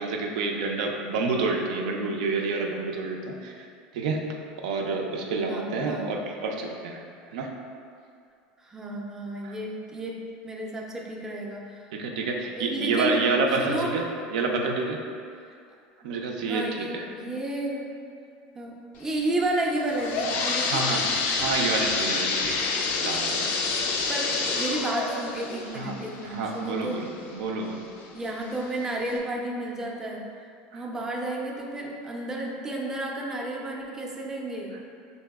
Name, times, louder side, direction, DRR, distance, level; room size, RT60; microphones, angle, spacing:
voice 1, 0.0-3.7 3.9-7.0 7.3-7.5 9.4-9.5 11.9-14.1 14.3-15.0 16.0-17.0 20.7-21.1 21.4-23.5 25.7-25.9 26.2-27.1 27.3-27.8 30.7-30.8, right 3 dB, 80° right, 1 dB, 0.4 m, -28 dB
voice 2, 5.5-6.0 8.6-11.8 12.6-13.2 13.6-14.3 16.0-16.2 16.5-17.9 18.5-20.8 24.1-27.0 28.1-30.3 30.7-34.8, right 1 dB, 15° right, -1 dB, 0.4 m, -32 dB
sound 1, 19.7-27.3 27.8-27.9 28.6-28.7 29.1-29.2, left 4 dB, 55° left, 0.4 m, -28 dB
3.8 x 2.6 x 2.3 m, 2.4 s
supercardioid pair, 110°, 4 cm